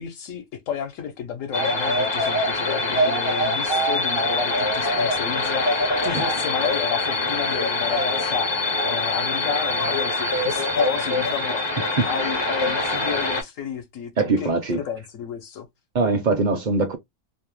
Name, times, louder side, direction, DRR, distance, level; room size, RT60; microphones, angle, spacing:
voice 1, 0.0-8.6 8.8-15.7, left 7 dB, 80° left, 1.1 m, -32 dB
sound 1, 1.5-13.4, left 2 dB, 35° left, 0.4 m, -24 dB
voice 2, 14.2-14.8 15.9-17.0, right 3 dB, 50° right, 0.5 m, -21 dB
2.7 x 2.0 x 3.0 m
omnidirectional pair, 1.4 m